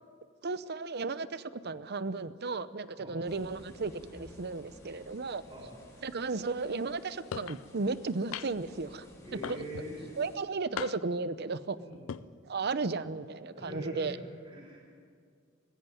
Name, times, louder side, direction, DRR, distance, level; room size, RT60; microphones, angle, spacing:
voice 1, 0.4-5.4 6.0-9.1 9.5-9.6 10.2-11.8 12.5-14.2, right 3 dB, 55° right, 15 dB, 0.7 m, -34 dB
sound 1, 3.2-10.4, equal, 15° left, 4.9 m, -55 dB
sound 2, 7.3-7.6 8.3-8.7 9.4-9.9 10.8-11.2 11.9-12.2, left 7 dB, 85° left, 0.5 m, -39 dB
voice 2, 9.2-10.0 11.7-12.1 13.5-14.8, equal, 25° right, -2 dB, 5.7 m, -43 dB
20.0 x 16.0 x 9.3 m, 2.1 s
head